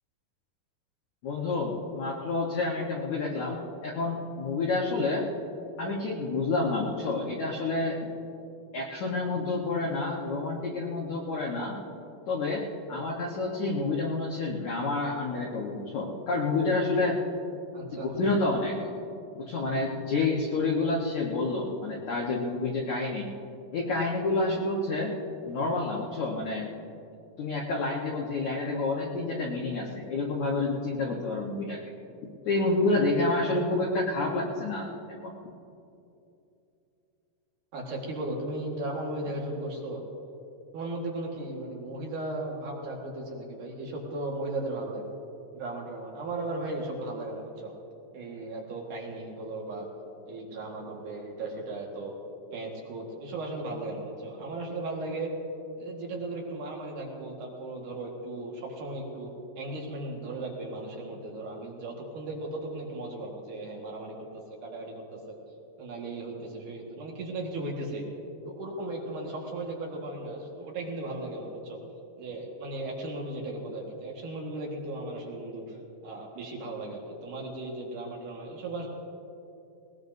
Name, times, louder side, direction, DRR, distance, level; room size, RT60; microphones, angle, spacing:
voice 1, 1.2-5.3 5.8-8.0 8.7-11.8 12.3-17.2 17.9-18.8 19.3-23.3 23.7-25.2 25.5-26.7 27.4-31.8 32.5-34.9 35.2-35.3, left 3 dB, 65° left, -3 dB, 1.8 m, -29 dB
voice 2, 17.7-18.1 37.7-40.0 40.7-45.1 45.5-47.7 48.1-49.9 50.3-52.2 52.5-55.3 55.8-64.2 64.6-65.4 65.8-68.1 68.4-71.8 72.2-75.8 76.0-78.9, right 2 dB, 55° right, -1 dB, 2.7 m, -36 dB
20.0 x 19.5 x 2.7 m, 2.8 s
omnidirectional pair, 5.1 m